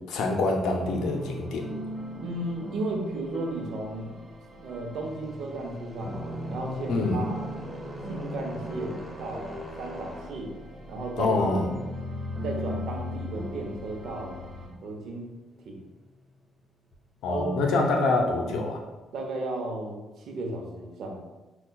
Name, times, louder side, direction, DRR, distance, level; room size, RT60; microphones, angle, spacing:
voice 1, 0.1-1.6 6.9-7.2 11.2-11.7 17.2-18.8, left 3 dB, 85° left, 2 dB, 0.6 m, -25 dB
sound 1, 0.8-14.7, left 1 dB, 50° right, 1.1 m, -38 dB
voice 2, 2.2-4.2 4.6-7.4 8.1-10.5 10.9-11.3 12.4-14.4 14.8-15.3 15.6-15.9 17.3-17.5 18.4-18.7 19.1-21.2, right 2 dB, 70° right, 2 dB, 0.7 m, -35 dB
sound 2, 5.0-19.3, left 1 dB, ahead, 0.9 m, -44 dB
5.5 x 2.3 x 2.2 m, 1.1 s
cardioid pair, 90°, 0 cm